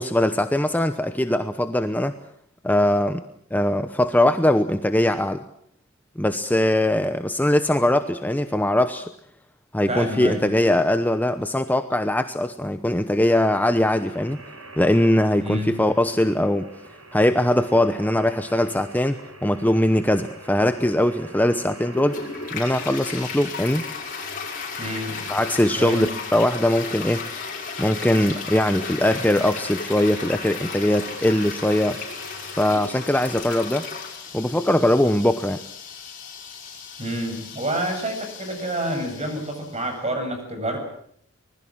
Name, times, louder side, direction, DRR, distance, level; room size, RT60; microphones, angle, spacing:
voice 1, 0.0-2.1 2.6-3.2 3.5-5.4 6.2-9.1 9.7-14.4 14.8-16.7 17.1-22.2 22.5-23.8 25.3-27.3 27.8-32.0 32.6-33.9 34.3-35.6, left 1 dB, 10° left, 9 dB, 0.9 m, -21 dB
voice 2, 9.9-10.5 15.4-15.8 24.8-25.3 25.8-26.1 37.0-40.8, right 1 dB, 30° right, 5 dB, 7.2 m, -28 dB
sound 1, 13.4-33.4, right 2 dB, 80° right, 6.7 m, -45 dB
Toilet flush, 21.9-39.9, left 5 dB, 40° left, 5.9 m, -35 dB
25.0 x 20.5 x 7.5 m, 0.66 s
head